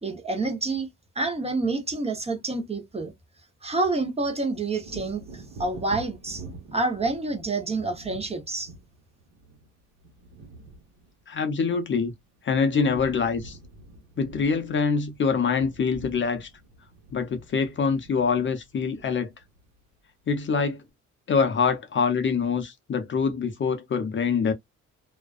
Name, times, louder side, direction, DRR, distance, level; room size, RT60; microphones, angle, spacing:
voice 1, 0.0-0.9 1.2-3.1 3.6-6.4 6.7-8.7, right 3 dB, 20° right, 0.8 m, -28 dB
Wind / Thunder, 4.8-12.4 12.7-19.9 20.3-20.5, right 2 dB, 60° right, 1.1 m, -46 dB
voice 2, 11.3-12.1 12.4-13.6 14.2-16.5 17.1-19.3 20.3-20.8 21.3-24.5, left 5 dB, 40° left, 0.6 m, -25 dB
2.4 x 2.2 x 2.3 m
cardioid pair, 90°, 30 cm